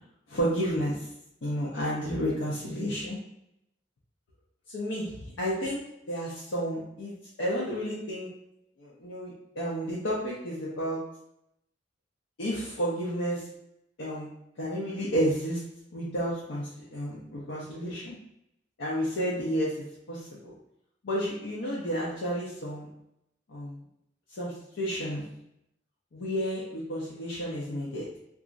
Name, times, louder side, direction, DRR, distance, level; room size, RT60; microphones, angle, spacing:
voice 1, 0.3-1.1 1.4-3.2 4.7-7.1 7.4-8.3 8.8-11.0 12.4-13.5 14.0-14.3 14.6-15.6 15.9-18.2 18.8-19.7 20.1-20.5 21.0-22.9 23.5-23.8 24.3-25.2 26.1-28.1, equal, 70° left, -6 dB, 0.6 m, -31 dB
2.9 x 2.4 x 2.5 m, 0.81 s
head